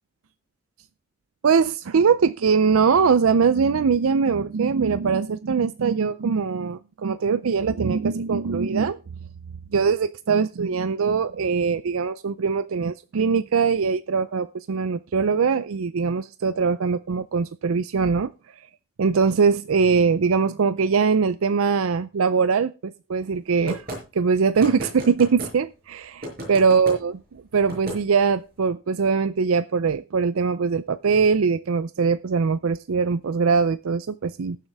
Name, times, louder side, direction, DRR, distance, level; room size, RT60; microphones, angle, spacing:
voice 1, 1.4-9.0 9.7-18.3 19.0-23.8 24.1-27.1 27.5-34.6, right 5 dB, 80° right, 14 dB, 0.5 m, -22 dB
sound 1, 23.7-24.0 24.6-25.5 26.2-27.0 27.7-28.0, equal, 45° right, 5.4 m, -33 dB
19.5 x 7.3 x 3.5 m, 0.32 s
head